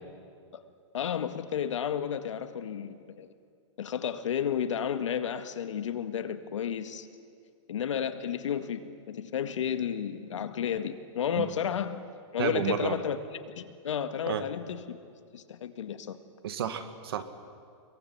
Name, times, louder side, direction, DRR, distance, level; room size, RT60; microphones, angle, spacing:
voice 1, 0.9-3.3 3.8-7.1 7.7-12.0 12.3-13.2 13.6-15.0 15.3-16.2, left 8 dB, 90° left, 9 dB, 2.0 m, -32 dB
voice 2, 12.4-13.0 14.3-14.4 16.4-17.2, right 9 dB, 55° right, 10 dB, 2.0 m, -31 dB
25.0 x 22.5 x 9.6 m, 2.3 s
supercardioid pair, 180°, 15 cm